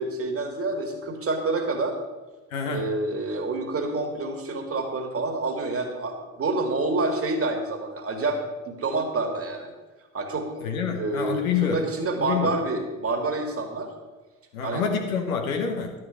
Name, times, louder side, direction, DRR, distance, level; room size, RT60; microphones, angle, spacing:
voice 1, 0.0-2.0 2.7-9.7 10.1-10.6 10.9-13.9 14.6-14.8, right 2 dB, 35° right, 3 dB, 2.1 m, -28 dB
voice 2, 2.5-2.9 10.6-11.8 12.1-12.6 14.5-15.9, left 6 dB, 80° left, 3 dB, 1.0 m, -27 dB
11.0 x 7.5 x 5.0 m, 1.2 s
figure-of-eight pair, 50°, 41 cm